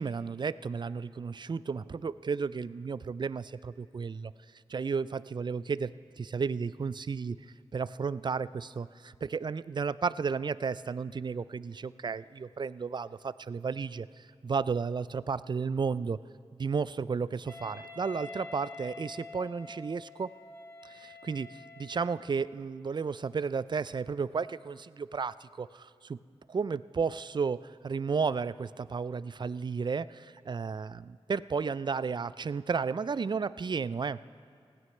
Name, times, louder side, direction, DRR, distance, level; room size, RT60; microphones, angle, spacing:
voice 1, 0.0-4.3 4.7-16.2 16.5-20.3 20.8-26.2 26.5-34.2, right 5 dB, 45° right, 17 dB, 0.4 m, -33 dB
Wind instrument woodwind instrument, 17.5-22.5, left 3 dB, 25° left, 4.0 m, -47 dB
20.0 x 16.0 x 3.2 m, 2.2 s
cardioid pair, 45°, 11 cm